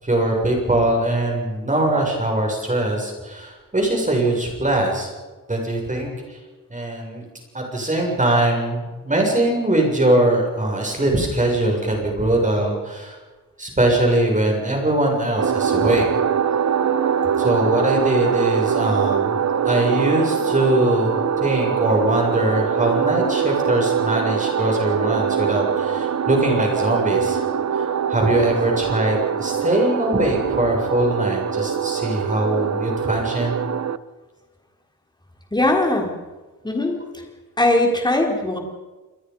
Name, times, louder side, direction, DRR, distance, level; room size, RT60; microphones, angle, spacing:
voice 1, 0.0-5.1 5.5-6.4 6.7-7.3 7.5-13.2 13.6-16.1 17.4-27.5 27.7-33.6, right 1 dB, 20° right, 1 dB, 7.0 m, -21 dB
sound 1, 15.4-34.0, right 8 dB, 55° right, 0.9 m, -23 dB
voice 2, 35.5-36.1 36.6-37.0 37.6-38.6, left 1 dB, 15° left, 2 dB, 3.9 m, -19 dB
29.5 x 22.0 x 5.5 m, 1.2 s
wide cardioid pair, 135°, 33 cm